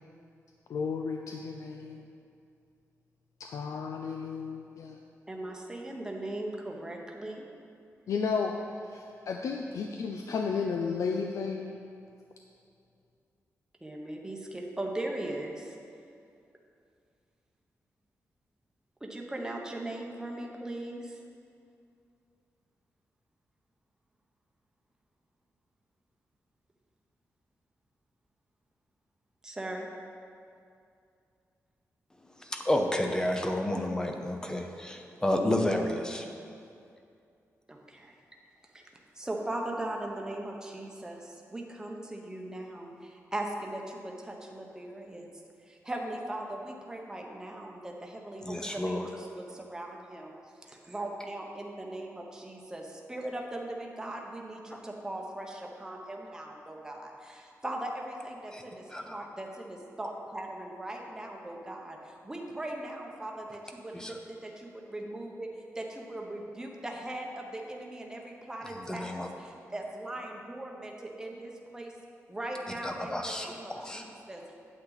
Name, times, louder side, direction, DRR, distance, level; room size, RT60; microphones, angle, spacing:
voice 1, 0.7-2.1 3.5-5.0 8.1-8.5 8.9-11.8, left 5 dB, 75° left, 3 dB, 0.5 m, -33 dB
voice 2, 5.3-7.4 13.8-15.8 19.0-21.2 29.4-29.9 37.7-38.1 38.7-45.3 45.7-50.4 50.6-65.5 65.7-71.9 72.3-74.4, right 1 dB, 10° right, 0 dB, 0.9 m, -39 dB
voice 3, 32.4-36.3 48.4-49.1 54.7-54.8 58.5-58.6 58.9-59.2 63.9-64.2 68.7-69.3 72.8-74.1, left 1 dB, 15° left, 4 dB, 0.7 m, -31 dB
8.6 x 8.1 x 4.0 m, 2.5 s
wide cardioid pair, 140°, 5 cm